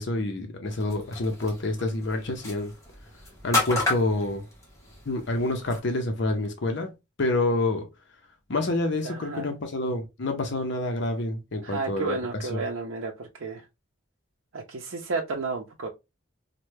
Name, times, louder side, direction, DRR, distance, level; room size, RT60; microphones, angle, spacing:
voice 1, 0.0-2.7 3.4-4.5 5.1-6.9 7.2-7.9 8.5-12.2 12.5-12.6, left 2 dB, 60° left, 0.6 m, -27 dB
sound 1, 0.7-5.8, left 3 dB, 15° left, 1.0 m, -33 dB
voice 2, 9.0-9.5 11.6-13.7 14.5-15.9, right 4 dB, 80° right, 0.6 m, -32 dB
3.2 x 2.2 x 3.1 m
head